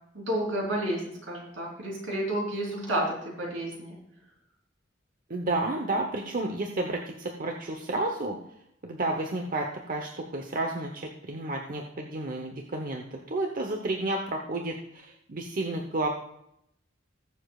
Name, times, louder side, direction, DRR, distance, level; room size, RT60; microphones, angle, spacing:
voice 1, 0.1-1.0 1.3-4.0, right 1 dB, 80° right, -2 dB, 3.5 m, -30 dB
voice 2, 5.3-8.4 8.8-16.1, right 2 dB, 45° right, 2 dB, 0.9 m, -31 dB
20.5 x 7.0 x 2.4 m, 0.76 s
head